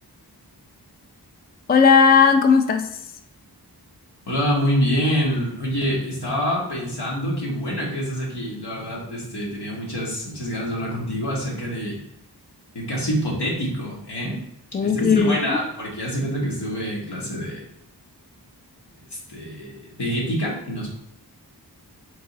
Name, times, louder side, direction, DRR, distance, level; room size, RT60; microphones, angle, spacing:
voice 1, 1.7-2.9 14.7-15.6, left 6 dB, 25° left, 7 dB, 0.3 m, -16 dB
voice 2, 4.2-12.0 12.7-14.4 14.8-17.6 19.0-20.9, equal, 80° left, -4 dB, 1.3 m, -26 dB
3.6 x 2.8 x 4.0 m, 0.78 s
wide cardioid pair, 45°, 40 cm